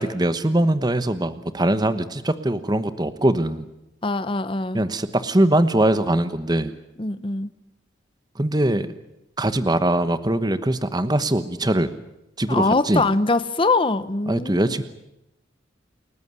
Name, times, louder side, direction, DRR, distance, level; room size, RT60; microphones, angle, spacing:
voice 1, 0.0-3.7 4.7-6.7 8.3-8.9 9.4-11.9 12.4-13.0 14.3-14.8, right 1 dB, 20° right, 12 dB, 1.1 m, -22 dB
voice 2, 4.0-4.8 7.0-7.5 12.5-14.8, left 3 dB, 25° left, 13 dB, 0.8 m, -23 dB
29.0 x 14.5 x 9.8 m, 0.88 s
head